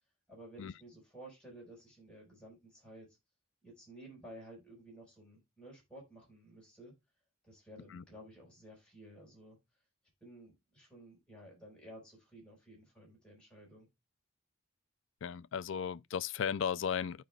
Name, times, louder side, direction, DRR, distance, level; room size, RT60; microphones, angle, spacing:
voice 1, 0.3-3.2 3.6-6.9 7.4-9.6 10.2-13.9, right 1 dB, 5° left, 4.2 m, -54 dB
voice 2, 15.2-17.2, left 7 dB, 65° left, 0.4 m, -35 dB
14.5 x 5.0 x 2.2 m
head